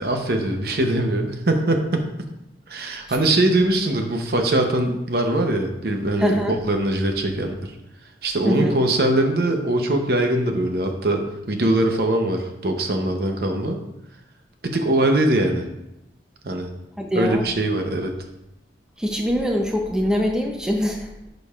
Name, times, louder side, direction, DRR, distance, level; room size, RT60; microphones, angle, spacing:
voice 1, 0.0-2.1 2.7-6.4 6.6-7.7 8.2-13.8 14.6-15.6 16.4-16.7 17.1-18.1, right 1 dB, 55° right, 4 dB, 0.8 m, -22 dB
voice 2, 6.2-6.6 8.4-8.7 17.0-17.4 19.0-21.3, equal, 5° right, 1 dB, 0.6 m, -23 dB
10.5 x 5.3 x 2.4 m, 0.87 s
head